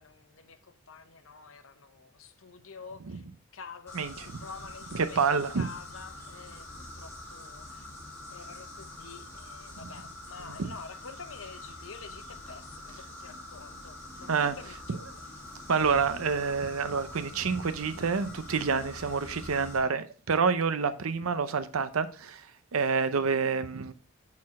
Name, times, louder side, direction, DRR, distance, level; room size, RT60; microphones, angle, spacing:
voice 1, 0.0-3.2 3.5-5.3 5.5-7.9 8.3-15.0, left 5 dB, 75° left, 0.8 m, -48 dB
sound 1, 3.9-19.8, left 2 dB, 10° left, 2.2 m, -45 dB
voice 2, 3.9-4.4 4.9-5.7 9.8-9.9 10.5-10.7 14.3-14.5 15.7-23.9, right 5 dB, 85° right, 0.6 m, -28 dB
6.5 x 4.3 x 4.1 m
head